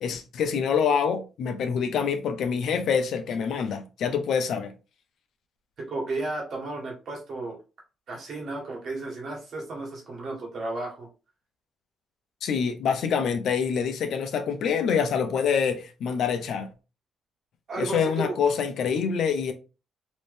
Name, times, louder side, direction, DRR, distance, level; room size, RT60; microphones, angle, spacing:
voice 1, 0.0-4.7 12.4-16.7 17.8-19.5, left 6 dB, 70° left, 0.7 m, -26 dB
voice 2, 5.8-7.6 8.1-11.1 17.7-18.4, right 2 dB, 60° right, 1.6 m, -33 dB
3.1 x 2.6 x 3.3 m
cardioid pair, 90°, 0 cm